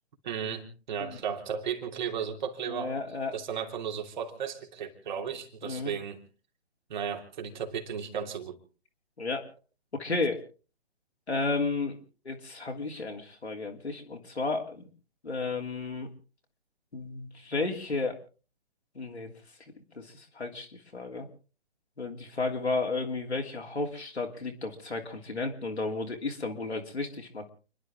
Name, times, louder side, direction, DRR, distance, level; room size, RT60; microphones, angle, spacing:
voice 1, 0.2-2.9 3.3-6.2 6.9-8.6, right 7 dB, 45° right, 3 dB, 3.1 m, -35 dB
voice 2, 2.7-3.3 5.6-5.9 9.2-9.4 9.9-10.4 11.3-12.0 12.2-14.9 15.2-16.1 16.9-18.2 18.9-19.3 19.9-21.3 22.0-27.5, left 3 dB, 80° left, 2 dB, 3.2 m, -33 dB
29.5 x 11.5 x 3.6 m, 0.37 s
figure-of-eight pair, 130°, 32 cm